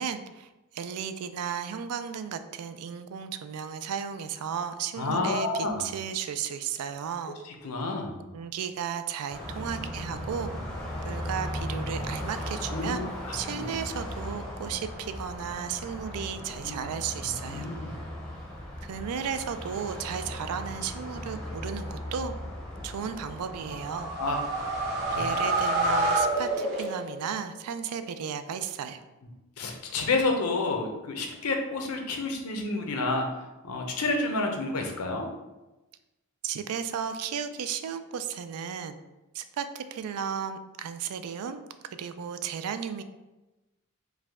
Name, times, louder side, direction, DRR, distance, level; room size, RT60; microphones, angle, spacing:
voice 1, 0.0-7.4 8.3-10.5 11.0-13.1 13.3-17.7 18.8-22.3 22.8-24.1 25.2-29.0 36.4-39.0 39.3-43.0, right 7 dB, 80° right, 10 dB, 0.3 m, -34 dB
voice 2, 5.0-5.9 7.4-8.2 12.7-13.6 16.6-16.7 17.2-18.0 24.2-24.7 25.0-25.2 29.6-33.2 33.6-35.3, left 3 dB, 80° left, 2 dB, 0.7 m, -30 dB
Car passing by, 9.3-26.5, left 1 dB, 5° left, 0.6 m, -38 dB
sound 1, 23.6-27.3, right 2 dB, 50° right, 0.8 m, -28 dB
4.6 x 2.2 x 3.5 m, 1.0 s
head